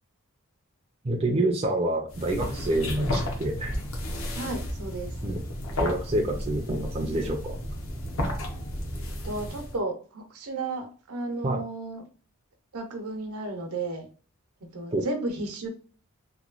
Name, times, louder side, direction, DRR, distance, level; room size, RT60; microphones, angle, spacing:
voice 1, 1.0-3.8 5.2-5.4 5.8-7.6 11.4-11.6 14.9-15.1, right 1 dB, 25° right, 1 dB, 0.4 m, -27 dB
sound 1, 2.1-9.8, equal, 65° left, 0.7 m, -33 dB
voice 2, 4.3-5.1 9.2-12.0 12.7-14.1 14.6-15.7, right 2 dB, 80° right, 4 dB, 0.7 m, -33 dB
2.9 x 2.2 x 2.4 m, 0.40 s
head